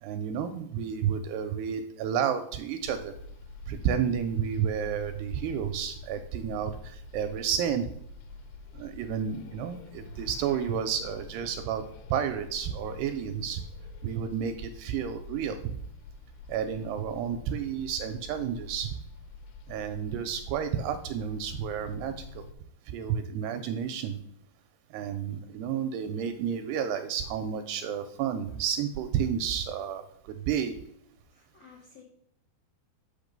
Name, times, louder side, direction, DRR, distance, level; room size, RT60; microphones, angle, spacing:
voice 1, 0.0-3.1 3.7-7.9 8.7-13.6 14.0-15.8 16.5-19.0 19.7-22.4 22.9-24.2 24.9-30.0 30.5-30.8, right 8 dB, 85° right, 8 dB, 2.4 m, -31 dB
sound 1, 2.8-22.5, left 3 dB, 90° left, 2.8 m, -46 dB
voice 2, 31.3-32.0, left 6 dB, 70° left, -3 dB, 1.5 m, -54 dB
6.6 x 6.0 x 5.2 m, 0.72 s
omnidirectional pair, 4.9 m